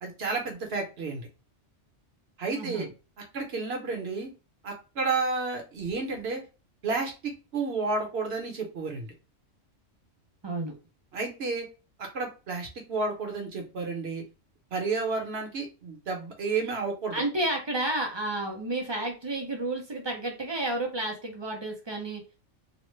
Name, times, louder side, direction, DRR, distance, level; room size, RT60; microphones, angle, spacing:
voice 1, 0.0-1.3 2.4-2.9 3.3-4.3 4.6-6.4 6.8-9.1 11.1-11.7 12.0-14.2 14.7-17.2, right 4 dB, 60° right, 2 dB, 1.0 m, -31 dB
voice 2, 2.5-2.9 10.4-10.8 17.1-22.2, right 2 dB, 40° right, 2 dB, 0.3 m, -31 dB
3.0 x 2.0 x 3.1 m, 0.31 s
omnidirectional pair, 1.3 m